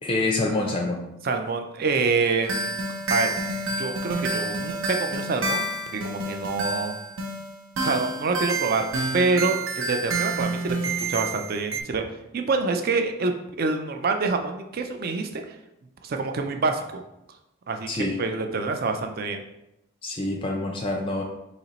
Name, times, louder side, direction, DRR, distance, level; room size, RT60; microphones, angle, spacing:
voice 1, 0.0-1.0 17.9-18.2 20.0-21.2, left 2 dB, 25° left, 1 dB, 0.5 m, -26 dB
voice 2, 1.2-2.8 3.1-3.3 3.8-7.0 7.8-8.9 9.1-12.0 12.3-15.4 16.0-17.0 17.7-19.4, right 4 dB, 45° right, 6 dB, 0.4 m, -26 dB
sound 1, 2.4-11.8, right 2 dB, 75° right, 0.7 m, -29 dB
4.2 x 2.9 x 4.0 m, 0.87 s
head